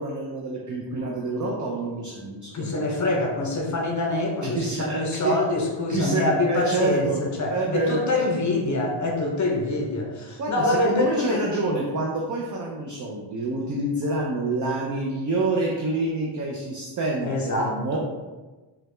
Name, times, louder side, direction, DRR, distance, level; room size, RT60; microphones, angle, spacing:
voice 1, 0.0-2.8 4.6-5.3 5.9-7.2 7.5-8.3 10.4-18.0, right 2 dB, 40° right, -2 dB, 0.5 m, -27 dB
voice 2, 2.5-11.4 17.2-18.0, left 2 dB, 40° left, 0 dB, 0.6 m, -25 dB
4.6 x 2.2 x 3.1 m, 1.2 s
wide cardioid pair, 145°, 46 cm